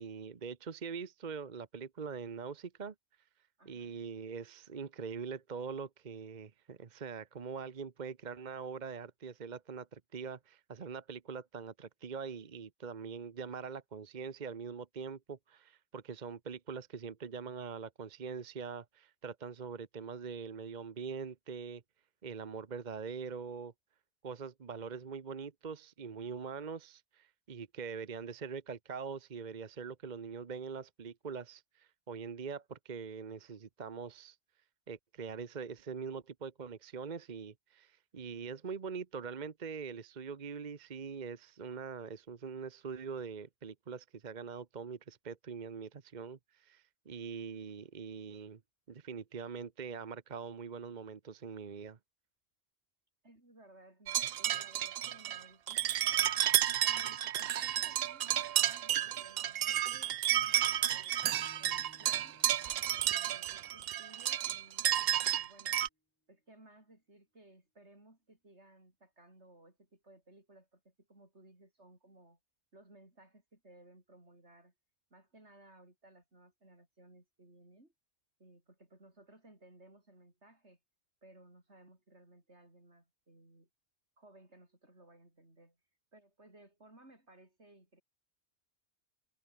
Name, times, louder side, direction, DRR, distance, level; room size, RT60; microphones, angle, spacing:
voice 1, 0.0-2.9 3.7-21.8 22.2-23.7 24.2-34.4 34.9-48.6 48.9-52.0, right 5 dB, 45° right, 1.1 m, -43 dB
voice 2, 3.6-3.9 53.2-56.4 56.8-62.4 63.0-65.8 66.3-72.4 72.7-74.7 75.1-77.9 78.4-80.8 81.2-83.7 84.2-85.8 86.1-88.0, right 1 dB, 80° right, 7.1 m, -60 dB
sound 1, 54.1-65.9, right 11 dB, 65° right, 0.8 m, -31 dB
Acoustic guitar / Strum, 61.2-65.5, equal, 10° left, 7.1 m, -63 dB
omnidirectional pair, 1.1 m